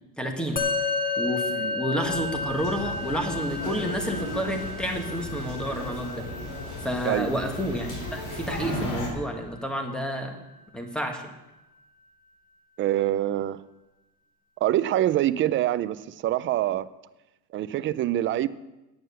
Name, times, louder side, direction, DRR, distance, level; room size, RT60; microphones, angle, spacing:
voice 1, 0.2-0.6 1.2-6.3 6.8-10.4 10.7-11.3, equal, ahead, 3 dB, 1.4 m, -30 dB
Musical instrument, 0.6-10.1, left 3 dB, 20° left, 0.9 m, -33 dB
sound 1, 2.0-9.1, left 1 dB, 50° left, 4.6 m, -35 dB
voice 2, 12.8-13.6 14.6-16.9 17.5-18.5, right 13 dB, 30° right, 14 dB, 0.4 m, -25 dB
9.5 x 9.2 x 6.8 m, 1.0 s
cardioid pair, 145°, 41 cm